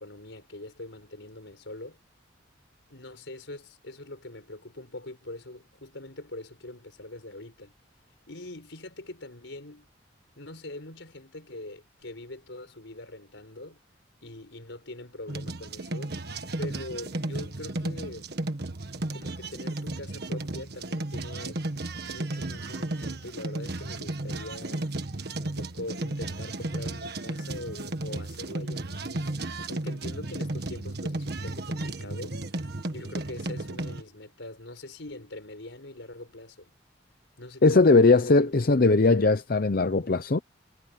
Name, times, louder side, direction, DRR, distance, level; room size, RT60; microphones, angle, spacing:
voice 1, 0.0-2.0 2.9-7.7 8.3-9.9 10.4-13.8 14.2-16.2 16.6-18.3 19.1-21.6 22.0-24.9 25.3-29.3 29.7-32.4 32.9-36.7 37.4-38.3 38.6-38.8, left 2 dB, 70° left, 4.6 m, -42 dB
sound 1, 15.3-34.0, right 2 dB, 55° right, 1.6 m, -34 dB
voice 2, 37.6-40.4, left 3 dB, 50° left, 0.6 m, -20 dB
head